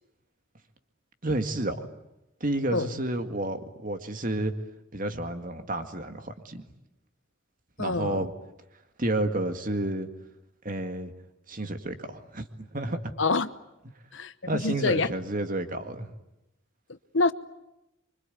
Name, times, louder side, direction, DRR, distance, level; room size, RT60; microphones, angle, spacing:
voice 1, 1.2-1.8 2.4-4.5 4.9-6.6 7.8-8.3 9.0-10.1 10.6-11.1 11.5-13.1 14.5-16.1, right 1 dB, 40° right, 2.1 m, -30 dB
voice 2, 7.8-8.2 13.2-13.5 14.1-15.1 17.1-17.3, left 3 dB, 65° left, 1.0 m, -26 dB
26.0 x 24.5 x 9.3 m
head